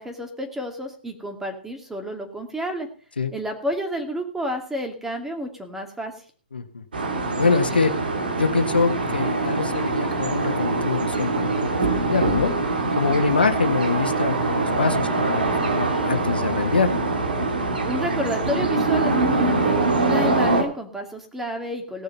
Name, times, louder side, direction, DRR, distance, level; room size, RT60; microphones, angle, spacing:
voice 1, 0.0-2.9 3.3-6.1 17.8-22.0, equal, 5° right, 4 dB, 2.5 m, -30 dB
voice 2, 6.5-6.8 7.4-8.0 8.4-12.5 12.9-16.9, left 4 dB, 85° left, 8 dB, 1.5 m, -24 dB
sound 1, 6.9-20.6, right 3 dB, 80° right, 2.7 m, -23 dB
18.0 x 6.8 x 5.6 m, 0.42 s
hypercardioid pair, 120°, 5 cm